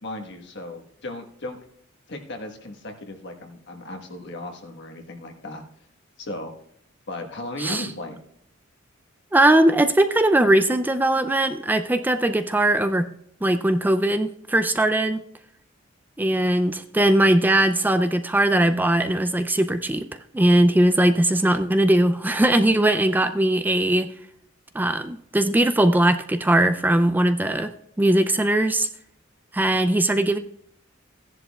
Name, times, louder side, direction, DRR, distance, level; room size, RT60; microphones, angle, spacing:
voice 1, 0.0-1.6 2.1-5.6 6.2-6.5 7.1-8.2, left 1 dB, 60° left, 4 dB, 1.4 m, -36 dB
voice 2, 9.3-13.1 13.4-15.2 16.2-20.1 20.3-24.1 24.7-27.7 28.0-28.9 29.5-30.4, right 1 dB, 10° right, 9 dB, 0.4 m, -20 dB
15.5 x 10.5 x 2.3 m, 0.70 s
head